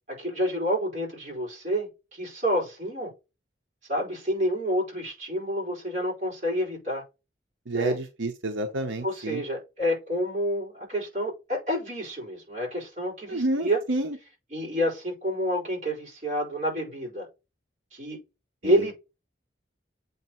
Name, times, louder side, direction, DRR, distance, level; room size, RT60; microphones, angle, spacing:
voice 1, 0.2-3.1 3.9-7.0 7.7-8.0 9.0-13.8 14.5-17.3 17.9-18.2 18.6-18.9, equal, 40° right, 4.4 m, -28 dB
voice 2, 7.7-9.4 13.3-14.2 18.6-18.7, right 2 dB, 90° right, 0.9 m, -29 dB
8.0 x 3.1 x 4.4 m
head